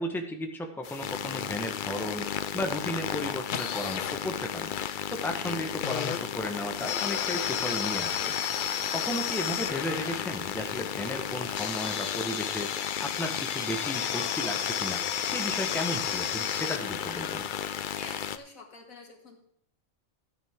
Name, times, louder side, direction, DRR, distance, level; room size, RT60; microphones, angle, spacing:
voice 1, 0.0-4.7 5.1-17.4, left 1 dB, ahead, 3 dB, 1.0 m, -35 dB
sound 1, 0.8-18.4, left 8 dB, 60° left, 0.5 m, -32 dB
voice 2, 17.9-19.4, left 3 dB, 85° left, 3 dB, 2.3 m, -47 dB
13.0 x 9.4 x 3.6 m, 0.67 s
omnidirectional pair, 1.4 m